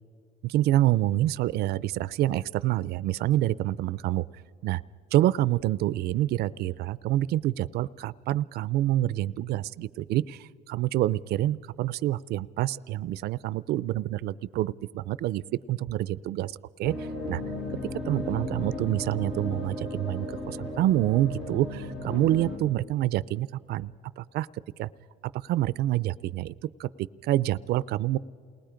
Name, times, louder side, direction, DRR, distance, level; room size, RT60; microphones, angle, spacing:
voice 1, 0.4-4.2 4.6-4.8 5.1-15.4 15.7-16.5 16.8-17.4 18.1-23.9 24.2-24.5 24.8-24.9 25.4-26.5 26.8-26.9 27.2-28.2, right 14 dB, 70° right, 18 dB, 0.5 m, -27 dB
sound 1, 16.8-22.6, left 1 dB, 75° left, 6.8 m, -35 dB
28.5 x 19.5 x 5.1 m, 2.2 s
cardioid pair, 110°, 17 cm